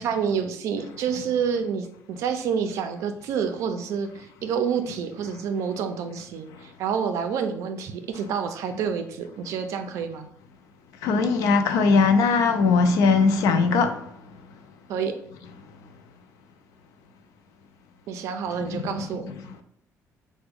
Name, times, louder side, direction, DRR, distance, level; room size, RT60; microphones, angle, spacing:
voice 1, 0.0-10.3 14.9-15.1 18.1-19.2, right 7 dB, 60° right, 0.4 m, -28 dB
voice 2, 11.0-14.0 18.7-19.1, left 4 dB, 75° left, 0.4 m, -20 dB
3.4 x 2.1 x 3.5 m
cardioid pair, 180°, 6 cm